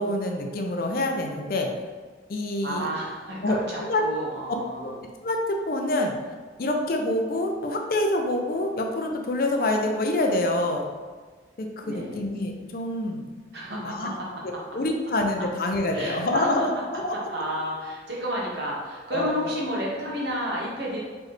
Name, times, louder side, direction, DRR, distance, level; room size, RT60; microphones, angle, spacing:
voice 1, 0.0-1.7 2.3-2.9 3.4-4.0 4.8-4.9 5.2-6.2 6.6-10.9 11.6-13.2 13.8-14.1 14.4-17.2 19.1-19.5, left 1 dB, 55° left, 3 dB, 0.5 m, -26 dB
voice 2, 2.6-5.0 11.8-12.1 13.5-14.3 15.9-16.5 17.1-21.0, equal, 70° right, -4 dB, 1.2 m, -31 dB
4.3 x 3.2 x 3.1 m, 1.5 s
head